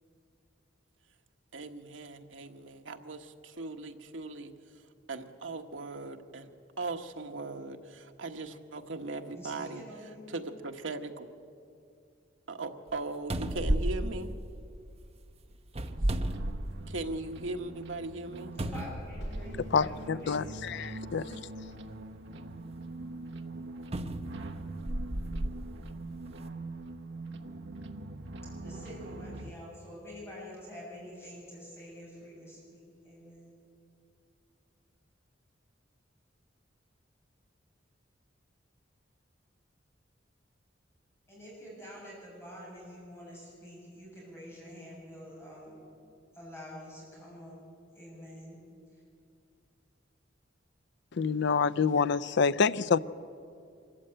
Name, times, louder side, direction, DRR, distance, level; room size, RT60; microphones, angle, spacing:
voice 1, 1.5-4.5 5.1-6.5 6.8-9.8 10.3-11.3 12.5-14.3 16.9-18.5, right 3 dB, 85° right, 5 dB, 1.4 m, -39 dB
voice 2, 9.3-10.3 18.6-20.3 28.6-33.5 41.3-45.8 46.3-47.6 48.0-48.6, equal, 15° left, -5 dB, 6.9 m, -47 dB
sound 1, 12.9-13.0 13.3-15.0 15.7-17.1 17.5-17.6 18.6-19.7 20.6-20.8 23.9-25.6 26.3-26.4, right 1 dB, 35° right, 0.9 m, -33 dB
sound 2, 15.9-29.5, right 2 dB, 70° right, 1.2 m, -43 dB
voice 3, 19.7-21.4 51.1-53.0, left 5 dB, 65° left, 16 dB, 0.5 m, -27 dB
24.5 x 14.5 x 8.9 m, 2.5 s
head